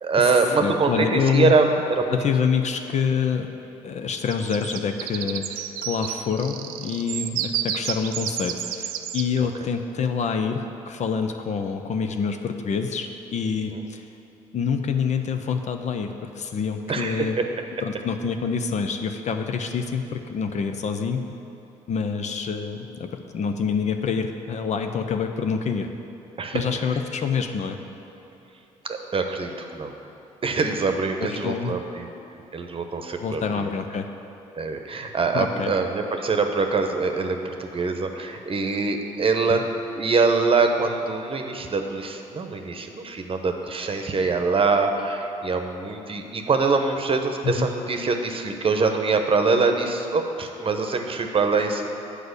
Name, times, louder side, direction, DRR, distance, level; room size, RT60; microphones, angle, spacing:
voice 1, 0.0-2.3 9.4-9.5 13.7-13.8 16.9-17.3 26.4-26.6 28.8-29.9 30.4-32.1 32.5-33.7 34.6-39.7 39.9-51.8, right 4 dB, 40° right, 5 dB, 0.9 m, -24 dB
voice 2, 0.6-1.5 2.1-3.5 3.8-14.0 14.5-17.4 17.8-21.2 21.9-25.9 26.5-27.8 31.2-31.8 33.2-34.1 35.3-35.7 39.5-39.6 47.4-47.7, left 6 dB, 50° left, 6 dB, 0.7 m, -26 dB
sound 1, 4.3-9.3, right 11 dB, 80° right, 0.4 m, -31 dB
8.0 x 4.9 x 6.6 m, 3.0 s
hypercardioid pair, 60°, 15 cm